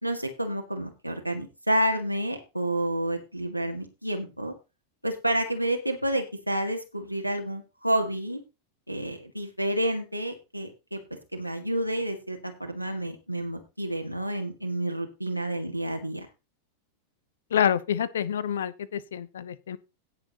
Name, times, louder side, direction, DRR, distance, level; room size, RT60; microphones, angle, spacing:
voice 1, 0.0-4.5 5.0-8.4 8.9-11.0 11.3-16.3, right 1 dB, 90° right, 3 dB, 1.8 m, -29 dB
voice 2, 17.5-19.8, left 9 dB, 65° left, 19 dB, 0.9 m, -27 dB
17.5 x 6.8 x 3.0 m, 0.27 s
figure-of-eight pair, 90°, 0 cm